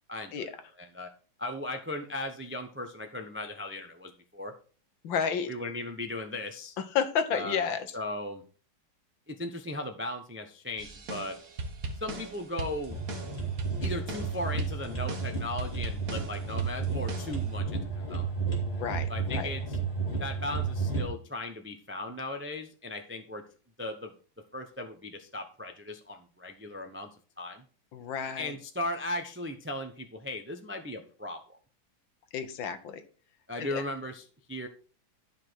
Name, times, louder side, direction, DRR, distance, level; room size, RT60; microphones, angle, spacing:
voice 1, 0.1-0.5 0.8-1.1 1.4-4.5 5.5-6.7 7.3-7.7 7.9-8.4 9.3-11.4 12.0-13.0 13.8-18.3 19.1-19.8 20.2-23.4 23.8-24.1 24.5-27.1 27.4-27.6 28.4-31.4 33.5-34.2 34.5-34.7, left 1 dB, 20° right, 5 dB, 0.3 m, -37 dB
voice 2, 5.0-5.5 6.8-7.9 18.7-19.5 27.9-28.6 32.3-33.0 33.6-33.8, left 7 dB, 75° left, 10 dB, 1.8 m, -31 dB
sound 1, 10.8-17.6, right 2 dB, 50° right, 1.7 m, -39 dB
sound 2, 12.9-21.0, right 5 dB, 30° left, 2.8 m, -32 dB
12.0 x 5.8 x 4.6 m, 0.39 s
omnidirectional pair, 2.2 m